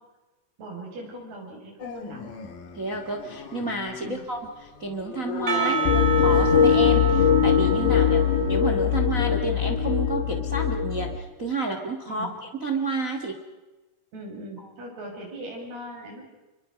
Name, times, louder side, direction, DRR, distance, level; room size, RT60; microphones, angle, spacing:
voice 1, 0.6-2.3 4.0-4.2 5.6-5.7 7.8-8.1 12.1-12.3 14.1-16.2, right 1 dB, 65° right, 0 dB, 8.2 m, -40 dB
Dog, 1.8-6.9, left 6 dB, 55° left, 3.2 m, -37 dB
voice 2, 2.7-8.2 8.5-11.1 11.4-12.3 12.6-13.4, right 3 dB, 50° right, 4 dB, 0.9 m, -30 dB
Percussion, 5.5-9.4, right 8 dB, 30° right, 2.3 m, -30 dB
sound 1, 5.9-11.2, left 7 dB, 90° left, 4.4 m, -21 dB
28.0 x 24.0 x 5.2 m, 1.2 s
omnidirectional pair, 4.9 m